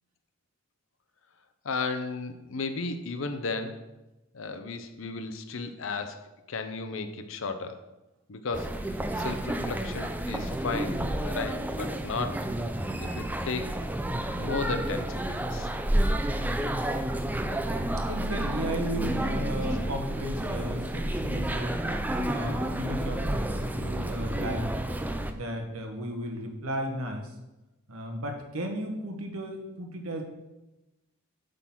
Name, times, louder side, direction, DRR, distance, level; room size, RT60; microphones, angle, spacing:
voice 1, 1.6-3.8 4.3-6.2 6.5-7.8 8.3-8.8 9.2-12.5 13.0-13.7 14.4-15.7, left 4 dB, 60° left, 9 dB, 0.6 m, -34 dB
sound 1, 8.5-25.3, right 1 dB, 5° right, 0.3 m, -30 dB
voice 2, 17.8-21.8 22.2-24.8 25.3-27.3 27.9-30.2, equal, 75° right, 4 dB, 1.3 m, -35 dB
8.2 x 3.9 x 6.0 m, 1.0 s
head